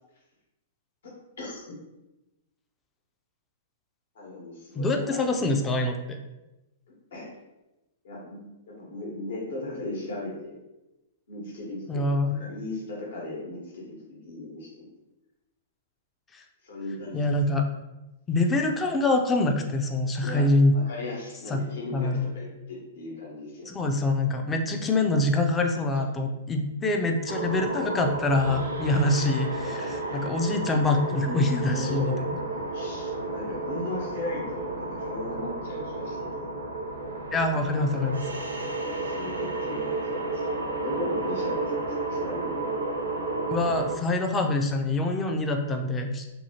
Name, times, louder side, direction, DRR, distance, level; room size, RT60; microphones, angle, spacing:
voice 1, 1.0-1.6 4.1-5.2 7.1-7.3 8.0-10.6 11.3-12.0 12.4-14.9 16.6-17.4 20.2-20.4 20.7-23.7 25.9-26.0 29.6-30.2 31.7-32.3 32.7-36.5 38.9-40.6 40.8-42.6, left 2 dB, 70° left, -3 dB, 1.2 m, -37 dB
voice 2, 4.8-6.2 11.9-12.3 16.3-16.4 17.1-17.6 18.3-20.7 21.5-21.6 21.9-22.3 23.7-32.3 37.3-38.2 43.5-46.2, left 2 dB, 20° left, 4 dB, 0.4 m, -25 dB
sound 1, 27.3-44.0, right 2 dB, 90° right, 0.4 m, -32 dB
2.7 x 2.7 x 2.8 m, 0.99 s
hypercardioid pair, 120°, 0 cm